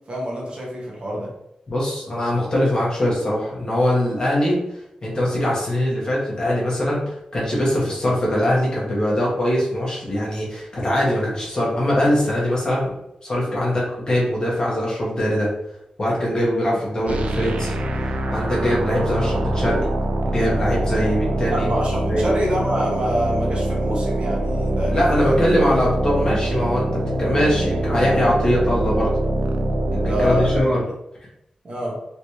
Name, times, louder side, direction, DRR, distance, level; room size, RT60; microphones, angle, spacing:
voice 1, 0.1-1.3 21.5-25.4 30.0-30.7 31.6-32.0, equal, 45° right, -2 dB, 1.0 m, -26 dB
voice 2, 1.7-4.6 5.0-12.9 13.2-15.5 16.0-17.7 18.0-19.8 20.2-21.7 22.1-22.3 24.9-29.2 29.9-30.9, equal, 35° left, -5 dB, 1.2 m, -22 dB
sound 1, 17.1-30.6, right 1 dB, 65° right, 0.4 m, -24 dB
3.4 x 3.1 x 2.8 m, 0.82 s
wide cardioid pair, 160°, 2 cm